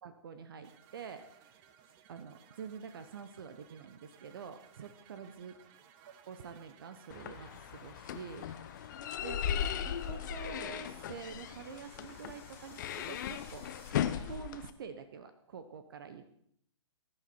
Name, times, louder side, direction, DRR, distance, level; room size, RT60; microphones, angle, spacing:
voice 1, 0.0-1.6 2.1-5.5 6.1-8.5 9.2-9.4 9.8-13.7 14.2-16.3, right 6 dB, 45° right, 10 dB, 1.1 m, -47 dB
sound 1, 0.6-14.3, right 8 dB, 25° right, 1.2 m, -61 dB
sound 2, 7.1-14.7, left 9 dB, 35° left, 0.9 m, -37 dB
sound 3, 8.8-13.9, left 5 dB, 15° left, 2.5 m, -62 dB
20.0 x 11.0 x 4.4 m, 0.67 s
figure-of-eight pair, 125°, 16 cm